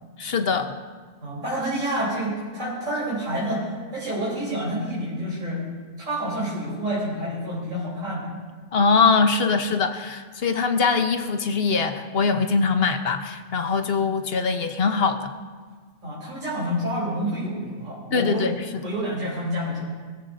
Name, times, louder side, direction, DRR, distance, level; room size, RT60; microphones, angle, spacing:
voice 1, 0.2-0.7 8.7-15.3 18.1-18.9, left 4 dB, 55° left, 7 dB, 1.0 m, -22 dB
voice 2, 1.2-3.7 3.9-5.6 6.1-8.3 16.0-18.5 18.8-19.8, equal, 85° right, -8 dB, 3.9 m, -28 dB
22.0 x 14.5 x 2.6 m, 1.5 s
omnidirectional pair, 1.3 m